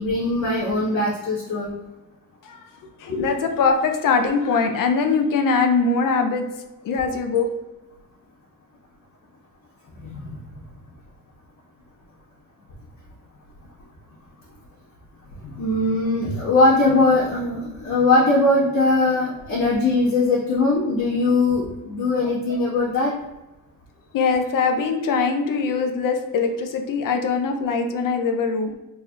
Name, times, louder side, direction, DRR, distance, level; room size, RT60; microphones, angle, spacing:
voice 1, 0.0-1.7 10.1-10.4 15.5-23.1, left 2 dB, 90° left, -11 dB, 1.4 m, -20 dB
voice 2, 3.0-6.4 6.8-7.5 22.2-22.3 24.1-28.7, left 4 dB, 70° left, 5 dB, 0.6 m, -22 dB
4.0 x 3.4 x 2.3 m, 1.0 s
cardioid pair, 120°, 34 cm